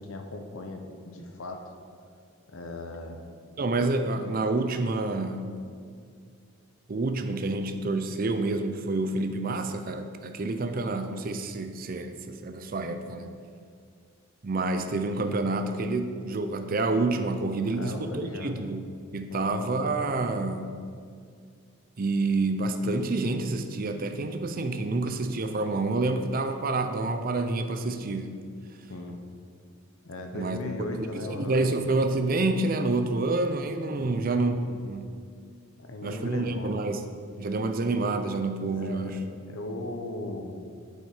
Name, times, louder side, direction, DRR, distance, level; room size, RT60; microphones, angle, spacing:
voice 1, 0.0-1.7 2.5-3.2 17.7-18.7 19.3-19.5 28.9-29.2 30.0-31.6 34.0-34.3 35.8-36.7 38.7-39.2 39.5-40.6, left 2 dB, 75° left, 4 dB, 0.9 m, -37 dB
voice 2, 3.6-5.5 6.9-13.3 14.4-18.9 19.1-20.8 22.0-28.4 30.3-30.6 30.9-35.1 36.0-37.0 37.4-39.2, right 2 dB, 40° right, 7 dB, 0.5 m, -28 dB
9.0 x 5.4 x 4.9 m, 2.2 s
head